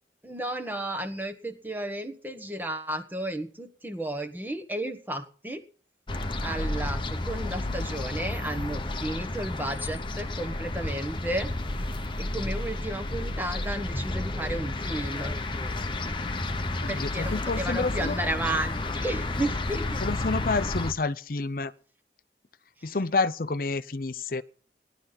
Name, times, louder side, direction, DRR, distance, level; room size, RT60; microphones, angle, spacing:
voice 1, 0.2-5.6 6.4-11.5 12.2-15.3 16.9-20.0 22.8-23.0, right 1 dB, 10° right, 1.3 m, -33 dB
sound 1, 6.1-20.9, left 2 dB, 25° left, 1.0 m, -31 dB
voice 2, 16.8-18.2 20.0-21.7 22.8-24.4, left 3 dB, 50° left, 0.7 m, -29 dB
17.5 x 11.5 x 4.0 m
head